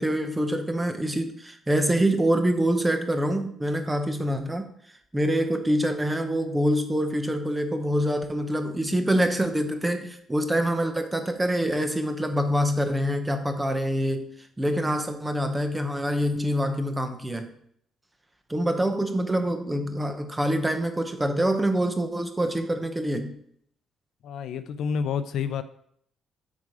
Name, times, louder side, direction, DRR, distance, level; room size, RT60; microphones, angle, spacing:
voice 1, 0.0-4.6 5.1-14.3 14.6-17.5 18.5-23.4, equal, 10° right, 7 dB, 0.9 m, -25 dB
voice 2, 24.2-25.6, left 6 dB, 65° left, 12 dB, 0.5 m, -29 dB
8.5 x 4.9 x 4.9 m, 0.67 s
cardioid pair, 150°, 0 cm